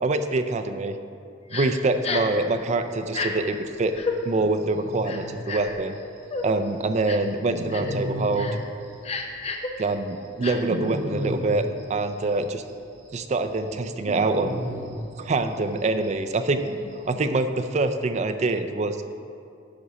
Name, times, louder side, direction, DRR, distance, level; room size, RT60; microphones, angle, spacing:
voice 1, 0.0-1.0 1.5-3.9 4.3-6.0 6.4-8.5 9.8-12.6 13.1-14.6 15.2-16.6 17.1-19.0, right 2 dB, 35° right, 8 dB, 0.4 m, -25 dB
Crying sobbing, 1.5-1.7 2.0-2.4 3.1-3.3 3.9-4.2 5.0-5.8 6.3-6.5 7.1-7.3 7.7-8.0 8.3-8.6 9.0-9.7 10.4-10.6, left 4 dB, 35° left, 0.6 m, -30 dB
sound 1, 2.3-2.9 3.2-3.3 3.5-3.6 3.9-4.0 4.2-6.7 6.9-9.2 9.4-12.3 12.7-12.8 13.1-15.8 16.0-16.1 16.3-17.1, equal, 85° right, 1.7 m, -34 dB
10.0 x 4.1 x 4.9 m, 2.5 s
head